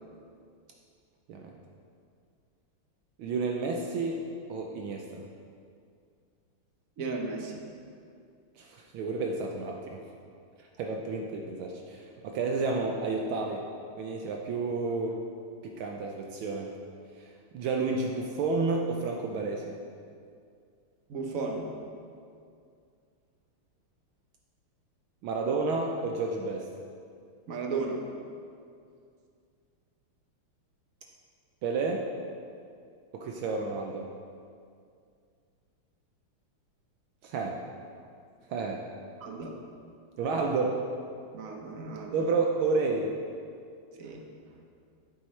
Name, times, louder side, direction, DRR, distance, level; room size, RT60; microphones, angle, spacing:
voice 1, 3.2-4.2 4.5-5.2 8.6-10.0 10.8-13.6 14.0-15.2 15.6-16.7 17.5-19.8 25.2-26.7 31.6-32.1 33.1-34.1 37.2-37.6 38.5-38.8 40.2-40.8 42.1-43.1, right 3 dB, 75° right, 1 dB, 1.4 m, -30 dB
voice 2, 7.0-7.6 21.1-21.7 27.5-28.0 39.2-39.6 41.3-42.3 44.0-44.2, right 4 dB, 60° right, 1 dB, 0.9 m, -34 dB
8.6 x 8.3 x 3.2 m, 2.3 s
omnidirectional pair, 2.4 m